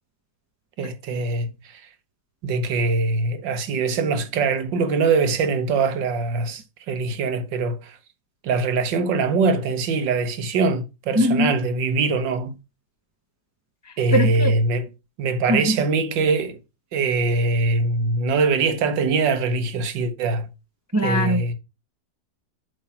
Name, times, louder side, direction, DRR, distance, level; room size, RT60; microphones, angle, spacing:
voice 1, 0.8-1.5 2.4-8.0 8.4-12.6 14.0-14.8 15.2-16.6 16.9-20.5 21.0-21.5, right 3 dB, 85° right, 1.7 m, -22 dB
voice 2, 11.1-11.6 13.8-14.5 15.5-15.8 20.9-21.5, equal, 25° right, 0.3 m, -22 dB
7.7 x 3.9 x 5.6 m
omnidirectional pair, 1.9 m